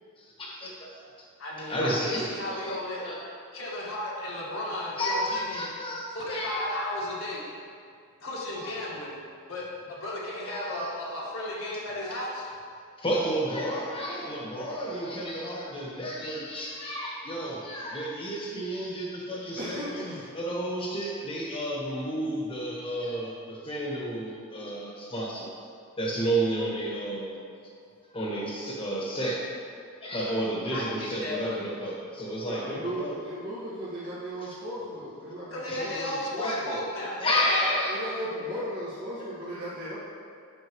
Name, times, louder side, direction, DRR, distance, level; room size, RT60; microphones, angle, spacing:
voice 1, 0.2-1.0 1.7-2.8 3.0-3.2 5.0-6.6 8.5-8.7 10.5-10.9 12.0-12.1 13.0-20.0 20.3-25.5 26.0-27.4 28.1-29.4 30.0-33.2 35.7-36.6 37.2-37.9 39.2-39.3, equal, 25° left, -4 dB, 1.5 m, -31 dB
voice 2, 1.4-3.0 3.5-5.7 6.1-7.5 8.2-9.2 9.5-12.5 30.7-31.6 35.5-37.8, left 1 dB, 70° left, -5 dB, 1.7 m, -34 dB
voice 3, 19.3-20.3 32.4-36.9 37.9-40.0, equal, 50° right, -12 dB, 1.9 m, -36 dB
9.3 x 6.4 x 3.1 m, 2.3 s
head